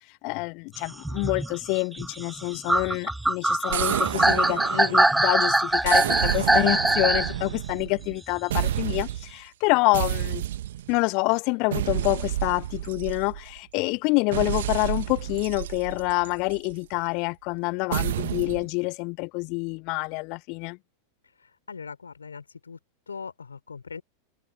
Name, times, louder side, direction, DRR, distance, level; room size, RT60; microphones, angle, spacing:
voice 1, 0.2-10.4 10.9-20.8, left 31 dB, 45° left, 1.4 m, -27 dB
sound 1, 0.9-7.4 8.6-8.7, right 2 dB, 5° right, 1.2 m, -23 dB
sound 2, 3.7-5.3 5.8-8.2 8.5-9.3 9.9-11.0 11.7-13.6 14.3-16.7 17.9-18.7, right 13 dB, 60° right, 2.1 m, -30 dB
voice 2, 21.4-22.8 23.1-24.0, left 5 dB, 75° left, 4.7 m, -40 dB
figure-of-eight pair, 90°, 0 cm